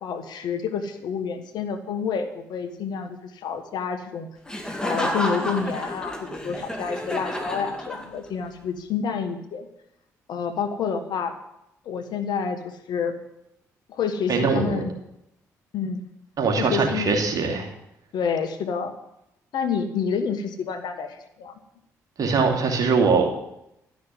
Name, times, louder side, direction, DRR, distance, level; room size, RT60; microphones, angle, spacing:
voice 1, 0.0-4.3 4.8-9.7 10.3-11.3 11.8-13.1 13.9-14.9 15.7-16.0 16.6-17.1 18.1-18.9 19.5-21.5, left 6 dB, 60° left, 8 dB, 1.3 m, -28 dB
Laughter, 4.5-8.4, left 1 dB, 10° left, 2.8 m, -30 dB
voice 2, 14.3-14.8 16.4-17.7 22.2-23.3, right 4 dB, 50° right, 2 dB, 2.8 m, -22 dB
12.0 x 6.3 x 9.5 m, 0.84 s
hypercardioid pair, 45°, 8 cm